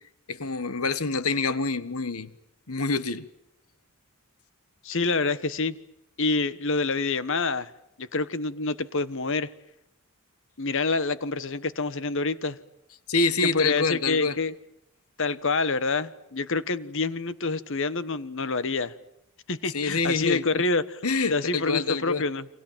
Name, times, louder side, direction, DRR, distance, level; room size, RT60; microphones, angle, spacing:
voice 1, 0.3-2.3 2.7-3.2 13.1-14.4 19.7-20.4 21.0-22.2, left 4 dB, 80° left, 1.5 m, -26 dB
voice 2, 4.8-5.8 6.2-7.7 8.0-9.5 10.6-12.6 13.4-14.5 15.2-18.9 19.5-21.0 21.3-22.5, left 3 dB, 60° left, 1.4 m, -27 dB
30.0 x 26.0 x 7.5 m
head